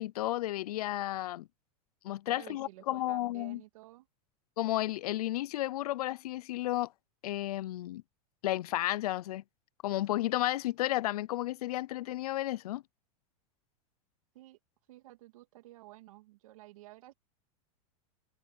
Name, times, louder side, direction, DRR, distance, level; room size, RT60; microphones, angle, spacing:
voice 1, 0.0-1.5 2.0-3.6 4.6-6.9 7.2-8.0 8.4-9.4 9.8-12.8, left 15 dB, 85° left, 0.5 m, -32 dB
voice 2, 2.3-4.1 14.3-14.6 14.9-17.1, right 18 dB, 65° right, 2.7 m, -52 dB
supercardioid pair, 160°, 19 cm